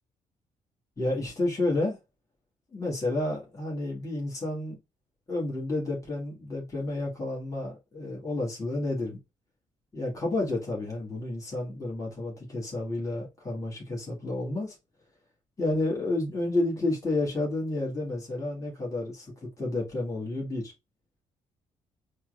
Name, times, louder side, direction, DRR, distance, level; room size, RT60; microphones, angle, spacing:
voice 1, 1.0-2.0 2.7-4.7 5.3-9.2 9.9-14.8 15.6-20.7, left 2 dB, 20° left, 1.5 m, -30 dB
4.3 x 2.1 x 2.4 m
hypercardioid pair, 45°, 17 cm